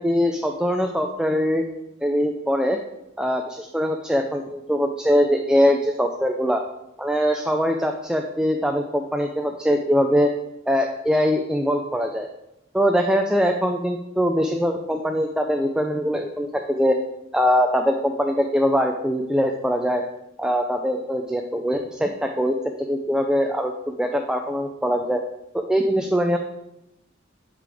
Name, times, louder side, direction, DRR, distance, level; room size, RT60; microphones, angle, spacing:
voice 1, 0.0-1.6 2.0-2.8 3.2-6.6 7.0-10.3 10.7-12.3 12.7-17.0 17.3-20.0 20.4-25.2 25.5-26.4, equal, 5° right, 4 dB, 0.4 m, -22 dB
11.0 x 5.0 x 3.4 m, 0.89 s
head